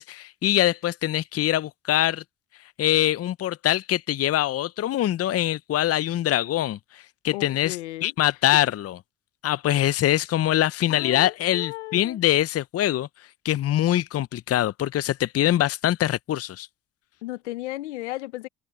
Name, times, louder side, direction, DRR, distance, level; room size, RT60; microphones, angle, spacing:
voice 1, 0.0-2.2 2.8-7.8 8.0-9.0 9.4-13.1 13.4-16.7, left 13 dB, 45° left, 0.7 m, -23 dB
voice 2, 7.3-8.1 9.7-9.8 10.9-12.2 17.2-18.5, left 18 dB, 85° left, 1.3 m, -35 dB
hypercardioid pair, 55°, 34 cm